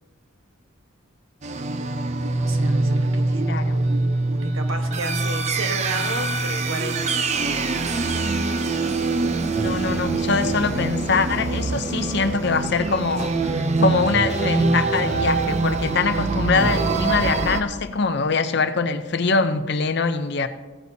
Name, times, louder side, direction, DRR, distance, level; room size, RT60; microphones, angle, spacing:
sound 1, 1.4-17.6, right 3 dB, 30° right, 0.5 m, -24 dB
voice 1, 2.4-7.7, right 3 dB, 70° right, 1.2 m, -33 dB
voice 2, 3.5-3.8 9.6-20.5, left 4 dB, 50° left, 0.6 m, -23 dB
16.0 x 9.5 x 2.7 m
head